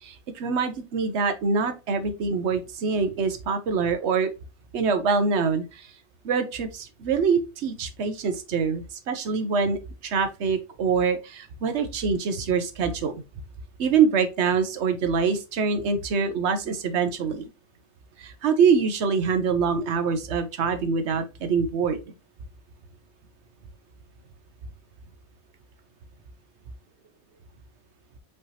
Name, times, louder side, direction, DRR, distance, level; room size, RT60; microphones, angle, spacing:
voice 1, 0.0-4.3 4.7-5.9 6.2-13.2 13.8-17.4 18.2-22.0, right 5 dB, 75° right, 1.1 m, -25 dB
5.4 x 3.5 x 2.8 m
omnidirectional pair, 1.2 m